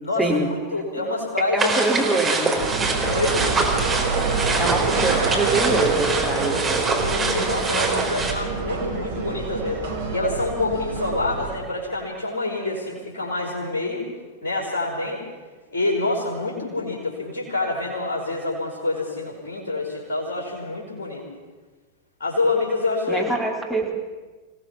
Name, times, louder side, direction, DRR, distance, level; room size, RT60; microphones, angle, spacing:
voice 1, 0.2-0.5 1.0-1.1 1.5-2.6 4.6-6.9 23.1-24.0, right 2 dB, 5° left, 2 dB, 4.0 m, -24 dB
voice 2, 0.7-1.7 2.1-2.2 3.1-3.4 6.9-14.1 14.4-15.2 15.7-21.2 22.2-23.4, left 2 dB, 60° left, -2 dB, 5.1 m, -27 dB
sound 1, 1.6-8.3, right 3 dB, 15° right, 4.0 m, -25 dB
sound 2, 2.6-11.6, right 4 dB, 65° right, 3.1 m, -26 dB
25.5 x 17.0 x 5.9 m, 1.3 s
figure-of-eight pair, 90°, 0 cm